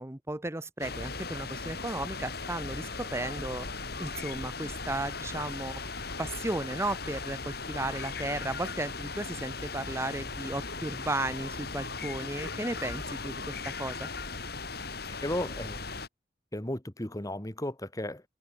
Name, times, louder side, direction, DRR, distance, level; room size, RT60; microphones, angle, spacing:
voice 1, 0.0-3.7 4.0-5.9 6.2-14.1, right 2 dB, 15° right, 1.0 m, -35 dB
sound 1, 0.8-16.1, left 4 dB, 55° left, 5.1 m, -38 dB
sound 2, 4.7-15.3, left 3 dB, 75° left, 7.0 m, -51 dB
voice 2, 15.2-15.8 16.5-18.2, left 1 dB, 20° left, 1.7 m, -34 dB
head